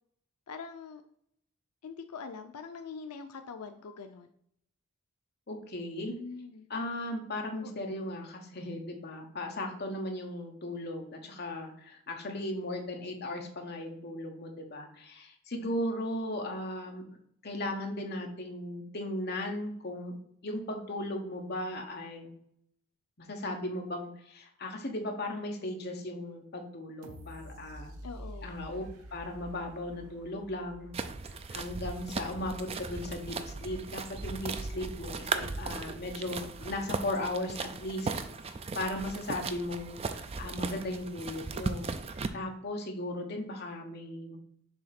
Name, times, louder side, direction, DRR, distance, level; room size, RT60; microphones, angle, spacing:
voice 1, 0.5-1.0 1.8-4.3 6.2-6.7 7.6-7.7 28.0-28.6, left 5 dB, 90° left, 7 dB, 0.5 m, -43 dB
voice 2, 5.5-6.1 6.7-17.0 17.4-22.3 23.2-27.9 28.4-28.8 29.1-31.0 31.2-38.1 38.7-41.9 42.3-44.4, left 1 dB, 45° left, 2 dB, 1.1 m, -37 dB
sound 1, 27.0-31.9 32.4-32.5, equal, 85° right, 0.8 m, -48 dB
sound 2, 30.9-42.3, right 4 dB, 25° right, 0.3 m, -37 dB
7.1 x 2.8 x 5.8 m, 0.69 s
head